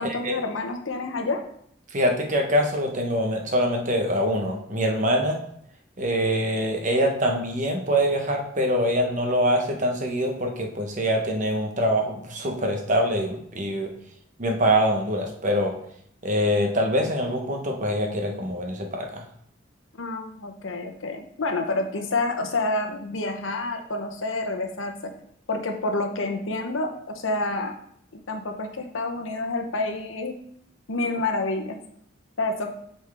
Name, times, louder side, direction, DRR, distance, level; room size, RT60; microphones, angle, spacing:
voice 1, 0.0-1.4 20.0-25.1 25.5-27.7 28.3-30.3 30.9-31.8 32.4-32.7, left 2 dB, 85° left, 4 dB, 0.9 m, -28 dB
voice 2, 1.9-5.4 6.0-13.9 14.4-15.7 16.2-19.2, equal, 40° right, 2 dB, 1.1 m, -24 dB
8.1 x 4.5 x 3.5 m, 0.68 s
head